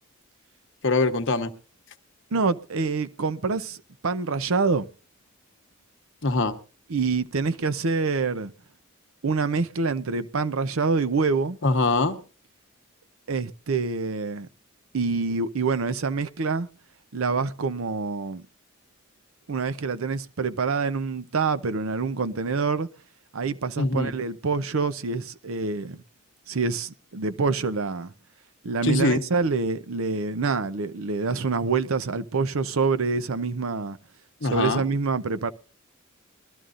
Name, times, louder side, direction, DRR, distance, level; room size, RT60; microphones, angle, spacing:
voice 1, 0.8-1.5 6.2-6.6 11.6-12.2 23.8-24.1 28.8-29.2 34.4-34.9, left 3 dB, 60° left, 1.0 m, -23 dB
voice 2, 2.3-3.8 4.0-4.9 6.9-8.5 9.2-11.6 13.3-14.5 14.9-16.7 17.1-18.4 19.5-22.9 23.3-26.0 26.5-28.1 28.6-34.0 34.4-35.5, right 4 dB, 70° right, 0.6 m, -26 dB
21.5 x 12.5 x 2.5 m
head